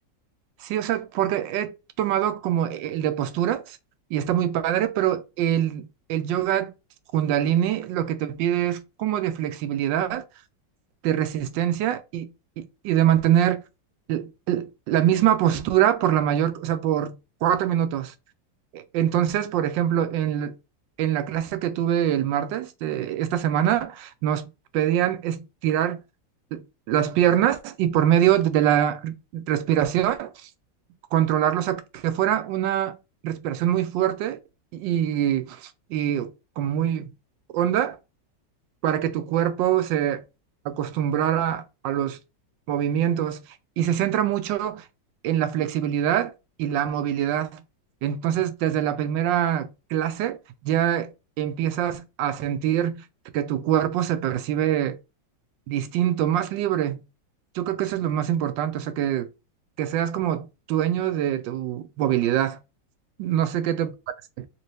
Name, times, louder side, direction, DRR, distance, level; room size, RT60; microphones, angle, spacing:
voice 1, 0.6-3.8 4.1-6.7 7.1-10.2 11.0-12.3 12.6-13.6 14.1-18.1 18.7-20.6 21.0-26.0 26.5-30.3 31.1-32.9 33.2-34.4 34.7-36.3 36.6-37.1 37.5-38.0 38.8-40.2 40.6-42.2 42.7-43.4 43.8-44.8 45.2-46.3 46.6-47.6 48.0-50.4 50.6-51.1 51.4-53.0 53.3-55.0 55.7-57.0 57.5-59.3 59.8-62.6 63.2-63.9, right 11 dB, 80° right, 1.2 m, -24 dB
3.2 x 2.8 x 3.3 m
omnidirectional pair, 2.0 m